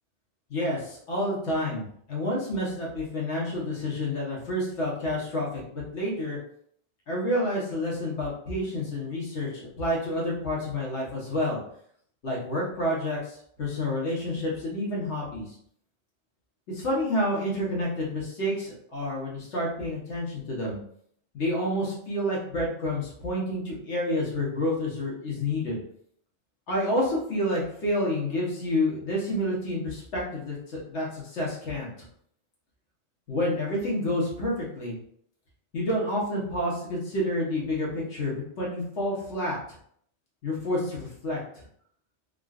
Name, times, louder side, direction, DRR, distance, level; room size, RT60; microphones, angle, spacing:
voice 1, 0.5-6.4 7.1-11.6 12.2-15.5 16.7-20.8 21.3-25.8 26.7-31.9 33.3-35.0 35.7-39.6 40.4-41.4, left 1 dB, 75° left, -4 dB, 1.5 m, -29 dB
3.7 x 2.5 x 2.4 m, 0.64 s
omnidirectional pair, 1.2 m